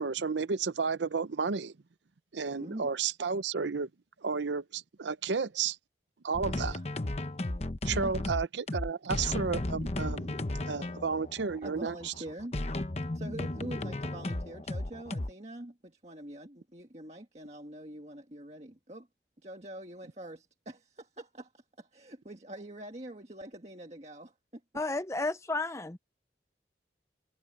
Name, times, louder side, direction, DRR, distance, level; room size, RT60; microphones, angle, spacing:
voice 1, 0.0-1.7 2.3-3.9 4.2-5.8 6.2-6.8 7.8-10.4 10.7-12.1, right 5 dB, 85° right, 0.7 m, -32 dB
sound 1, 6.3-15.3, left 1 dB, 35° left, 0.9 m, -34 dB
voice 2, 6.4-6.9 7.5-7.7 8.0-8.2 11.6-12.6 13.1-19.1 19.4-24.6, right 1 dB, 35° right, 1.7 m, -44 dB
voice 3, 24.8-26.0, left 2 dB, 15° left, 0.5 m, -32 dB
head